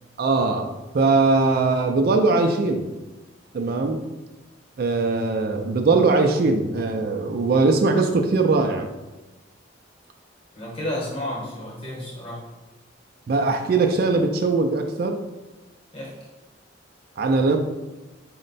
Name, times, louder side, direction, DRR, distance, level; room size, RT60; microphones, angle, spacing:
voice 1, 0.2-2.9 3.5-4.0 4.8-8.9 13.3-15.2 17.2-17.6, right 3 dB, 50° right, 4 dB, 0.3 m, -21 dB
voice 2, 10.5-12.5 15.9-16.1, left 1 dB, 30° left, -3 dB, 1.0 m, -31 dB
4.3 x 2.1 x 3.9 m, 1.1 s
head